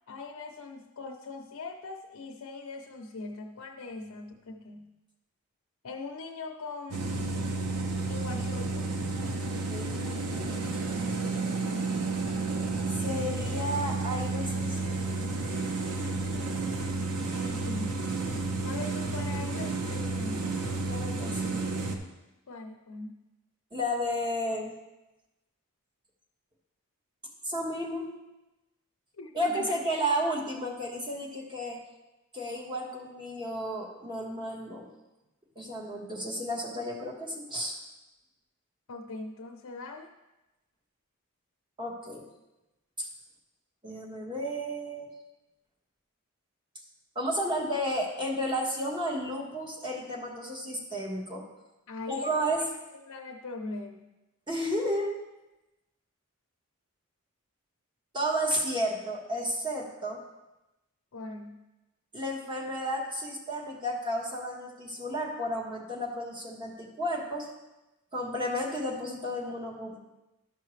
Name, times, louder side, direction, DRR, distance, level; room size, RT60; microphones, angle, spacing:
voice 1, 0.1-4.9 5.8-7.1 8.1-8.9 17.3-18.1 18.6-20.5 22.5-23.2 29.2-29.8 38.9-40.1 51.9-52.7 53.1-54.1 61.1-61.6, left 3 dB, 70° left, 2 dB, 0.6 m, -41 dB
sound 1, 6.9-22.0, right 3 dB, 90° right, 0.9 m, -31 dB
voice 2, 9.7-10.7 13.0-15.0 20.8-21.6 23.7-24.8 27.4-28.1 29.3-31.8 32.3-34.9 35.5-37.8 41.8-42.3 43.0-43.1 43.8-45.1 47.1-51.5 52.1-52.7 54.5-55.1 58.1-60.2 62.1-67.5 68.1-70.0, equal, 20° right, -2 dB, 1.3 m, -32 dB
12.5 x 5.6 x 3.2 m, 1.0 s
head